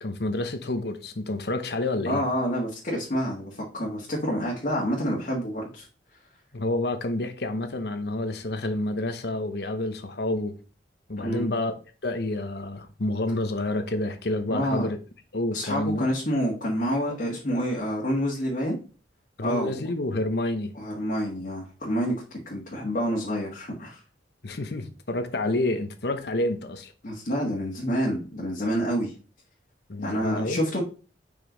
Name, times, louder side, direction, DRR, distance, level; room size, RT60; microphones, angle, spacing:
voice 1, 0.0-2.2 6.5-10.6 11.1-11.7 12.0-15.0 15.3-16.1 19.4-20.7 24.4-26.9 29.9-30.6, left 2 dB, 65° left, 0.9 m, -29 dB
voice 2, 2.0-5.9 11.2-11.5 14.5-14.9 15.5-18.8 19.4-19.8 20.7-24.0 27.0-29.1 30.0-30.8, equal, 50° left, 1.6 m, -28 dB
5.4 x 5.0 x 3.9 m
head